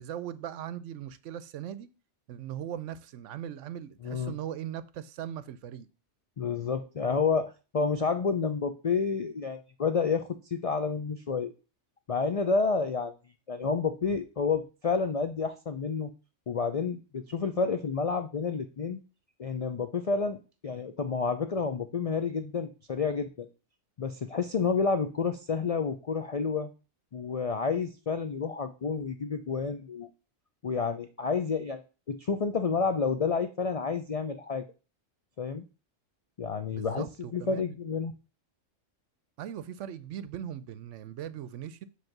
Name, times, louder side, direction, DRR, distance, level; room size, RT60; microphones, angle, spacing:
voice 1, 0.0-1.9 2.3-5.9 36.7-37.8 39.4-41.8, right 10 dB, 75° right, 0.9 m, -39 dB
voice 2, 4.0-4.3 6.4-11.5 12.1-13.1 13.5-16.1 16.5-19.0 19.4-23.5 24.0-26.7 27.1-30.1 30.6-31.8 32.1-34.6 35.4-35.7 36.4-37.1 37.3-38.1, left 5 dB, 65° left, 0.3 m, -29 dB
7.9 x 3.3 x 5.9 m
omnidirectional pair, 1.3 m